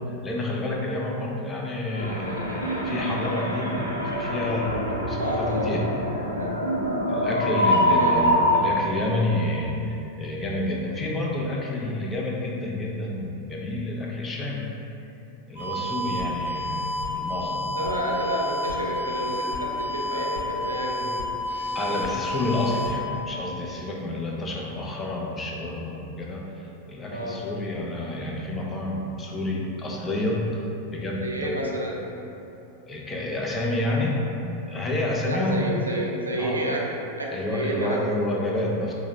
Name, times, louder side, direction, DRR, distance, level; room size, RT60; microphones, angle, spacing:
voice 1, 0.0-5.9 7.1-14.8 15.5-17.6 21.7-31.7 32.9-34.2 34.7-35.7 36.4-36.7 37.3-38.9, left 2 dB, 20° left, -2 dB, 0.5 m, -29 dB
sound 1, 1.9-8.6, equal, 85° left, 0.4 m, -25 dB
voice 2, 5.2-5.7 6.3-6.6 8.0-8.2 17.7-21.3 27.1-27.4 31.2-32.1 35.2-38.1, right 1 dB, 80° right, -2 dB, 0.4 m, -30 dB
sound 2, 15.6-23.0, left 1 dB, 65° left, 1.2 m, -30 dB
4.5 x 2.1 x 3.0 m, 2.9 s
figure-of-eight pair, 90°, 0 cm